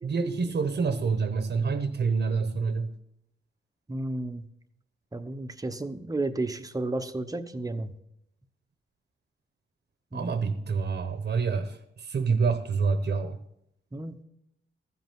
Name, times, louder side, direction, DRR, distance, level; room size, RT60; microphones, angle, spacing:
voice 1, 0.0-2.9 10.1-11.8 12.0-13.4, right 5 dB, 50° right, 8 dB, 1.0 m, -27 dB
voice 2, 3.9-4.5 5.1-7.9 10.1-10.4 13.9-14.2, right 2 dB, 15° right, 8 dB, 0.9 m, -32 dB
14.5 x 5.4 x 7.6 m, 0.78 s
cardioid pair, 90°, 21 cm